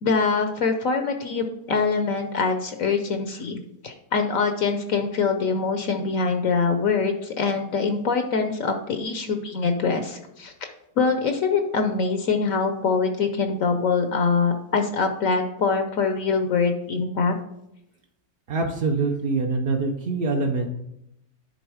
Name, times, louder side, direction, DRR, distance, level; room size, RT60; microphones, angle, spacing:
voice 1, 0.0-10.5 11.0-17.3, left 4 dB, 65° left, 6 dB, 1.0 m, -24 dB
voice 2, 18.5-20.7, right 3 dB, 55° right, 1 dB, 0.6 m, -24 dB
10.5 x 3.8 x 4.7 m, 0.83 s
omnidirectional pair, 1.7 m